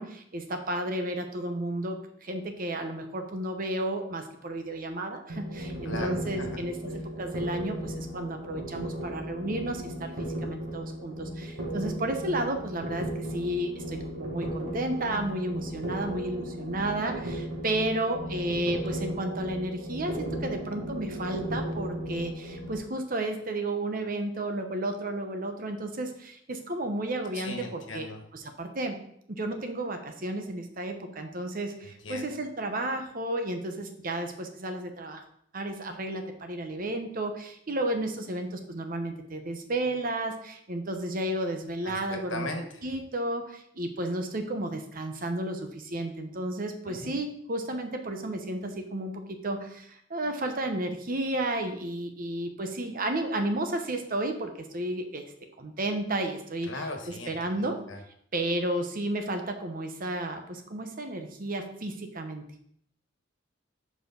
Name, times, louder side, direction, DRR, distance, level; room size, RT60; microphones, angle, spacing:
voice 1, 0.0-6.8 7.2-28.1 28.6-29.0 29.3-35.2 35.5-42.5 42.8-55.3 55.6-56.7 57.3-57.8 58.3-62.5, right 1 dB, 45° right, 6 dB, 1.0 m, -32 dB
sound 1, 5.3-22.8, right 1 dB, 80° right, 2.1 m, -36 dB
voice 2, 5.8-6.6 27.3-28.3 31.8-32.3 41.8-43.0 46.8-47.1 56.6-58.0, left 2 dB, 80° left, 4 dB, 1.4 m, -38 dB
6.8 x 5.1 x 5.2 m, 0.69 s
head